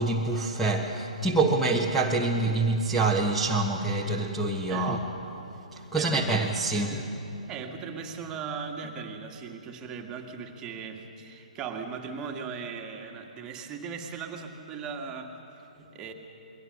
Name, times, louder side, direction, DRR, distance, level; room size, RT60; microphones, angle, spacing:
voice 1, 0.0-5.0 5.7-7.0, right 3 dB, ahead, -2 dB, 1.3 m, -26 dB
voice 2, 5.9-7.2 7.5-16.1, right 6 dB, 15° right, 3 dB, 2.0 m, -38 dB
28.0 x 22.0 x 6.6 m, 3.0 s
figure-of-eight pair, 130°, 4 cm